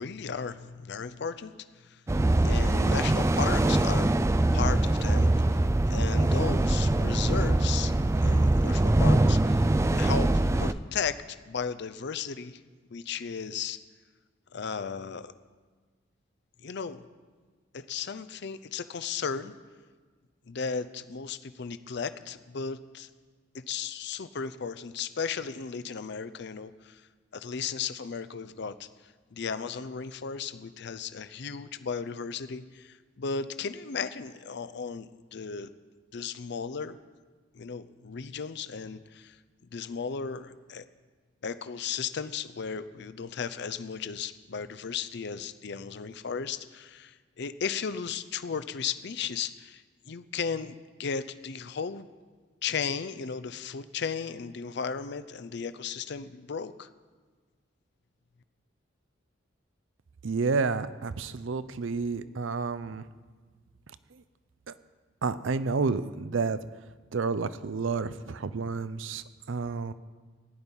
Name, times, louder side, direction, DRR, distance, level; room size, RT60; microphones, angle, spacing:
voice 1, 0.0-1.5 2.4-4.1 4.5-5.3 5.9-7.9 8.2-9.6 9.9-11.2 11.4-12.6 12.9-13.8 14.5-15.3 16.6-17.0 17.7-19.5 20.5-23.1 23.7-27.0 27.3-28.9 29.3-35.7 36.1-37.0 37.5-39.3 39.7-40.8 41.4-50.7 51.0-52.1 52.6-56.9, left 6 dB, 60° left, 13 dB, 0.5 m, -35 dB
sound 1, 2.1-10.7, right 1 dB, 15° right, 0.3 m, -23 dB
voice 2, 60.2-63.0 64.7-64.8 65.2-66.6 67.1-69.9, right 4 dB, 75° right, 14 dB, 0.6 m, -30 dB
15.5 x 5.4 x 9.8 m, 1.4 s
head